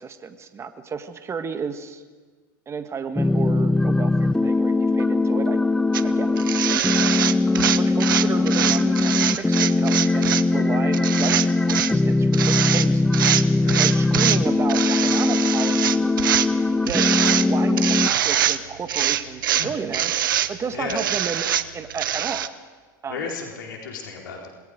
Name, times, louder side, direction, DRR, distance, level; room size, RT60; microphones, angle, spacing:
voice 1, 0.0-2.0 2.7-5.6 6.0-6.3 7.8-13.0 13.8-16.1 16.8-17.1 17.4-21.4 21.7-22.4 23.0-23.2, right 6 dB, 25° right, 8 dB, 1.5 m, -32 dB
sound 1, 3.2-18.1, left 2 dB, 5° left, 0.6 m, -21 dB
sound 2, 5.9-6.0 6.4-10.4 10.9-11.9 12.3-12.9 13.1-14.4 14.7-16.5 16.9-17.5 17.8-18.6 18.9-20.5 20.9-22.5, right 11 dB, 85° right, 0.8 m, -23 dB
voice 2, 23.1-24.5, left 5 dB, 80° left, 0 dB, 4.1 m, -33 dB
26.5 x 20.5 x 5.1 m, 1.4 s
hypercardioid pair, 95°, 11 cm